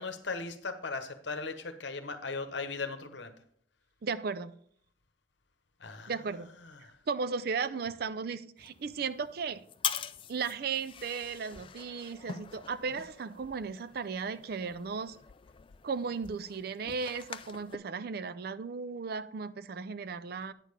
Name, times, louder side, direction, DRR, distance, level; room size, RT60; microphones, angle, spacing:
voice 1, 0.0-3.3 5.8-6.1 6.6-6.9, left 4 dB, 65° left, 9 dB, 1.0 m, -38 dB
voice 2, 4.0-4.6 6.1-6.5 7.1-9.6 10.3-15.2 15.8-20.5, right 5 dB, 50° right, 14 dB, 0.4 m, -35 dB
sound 1, 8.6-17.8, left 8 dB, 25° left, 0.3 m, -43 dB
9.0 x 6.5 x 5.0 m, 0.64 s
head